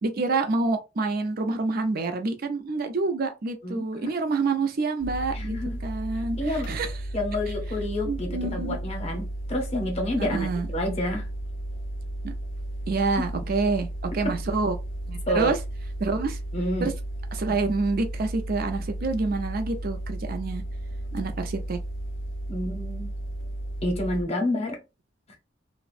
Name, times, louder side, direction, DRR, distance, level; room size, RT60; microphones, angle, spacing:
voice 1, 0.0-5.5 5.8-6.9 8.1-8.8 10.2-10.7 12.2-12.3 12.9-14.7 15.1-15.6 16.0-16.4 16.8-16.9 17.3-20.6 21.1-21.8, right 3 dB, 50° right, 0.5 m, -27 dB
voice 2, 3.6-4.1 5.3-5.8 6.4-6.7 7.1-11.3 14.2-14.3 15.3-15.5 16.5-16.9 22.5-23.1 23.8-24.8, left 1 dB, 35° left, 0.8 m, -29 dB
sound 1, 5.0-24.2, right 1 dB, 85° left, 0.4 m, -34 dB
2.4 x 2.1 x 2.4 m
head